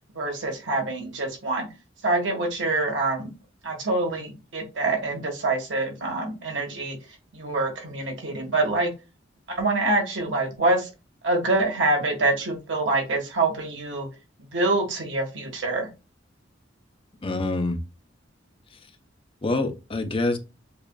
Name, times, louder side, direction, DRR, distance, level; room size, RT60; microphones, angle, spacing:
voice 1, 0.1-1.7 2.0-3.3 3.6-7.0 7.3-8.9 9.5-10.9 11.2-14.1 14.5-15.9, right 2 dB, 75° right, 1.4 m, -25 dB
voice 2, 17.2-17.8 19.4-20.4, left 2 dB, 30° left, 0.6 m, -25 dB
6.8 x 2.4 x 2.2 m
head